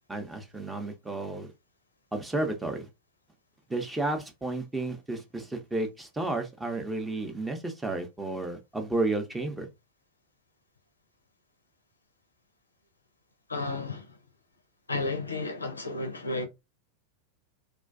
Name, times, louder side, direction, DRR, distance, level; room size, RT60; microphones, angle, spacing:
voice 1, 0.1-1.5 2.1-2.9 3.7-9.7, right 2 dB, 10° right, 0.6 m, -32 dB
voice 2, 13.5-14.2 14.9-16.4, left 2 dB, 85° left, 0.5 m, -32 dB
2.3 x 2.3 x 2.4 m
figure-of-eight pair, 90°, 0 cm